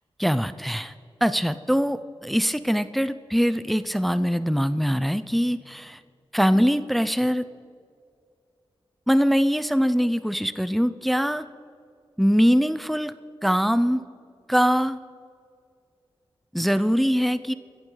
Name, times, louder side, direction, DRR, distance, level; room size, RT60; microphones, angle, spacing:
voice 1, 0.2-0.9 1.2-6.0 6.3-7.5 9.1-11.5 12.2-13.1 13.4-14.0 14.5-15.0 16.5-17.5, equal, ahead, 13 dB, 0.6 m, -22 dB
24.0 x 14.5 x 4.0 m, 2.2 s
cardioid pair, 50°, 10 cm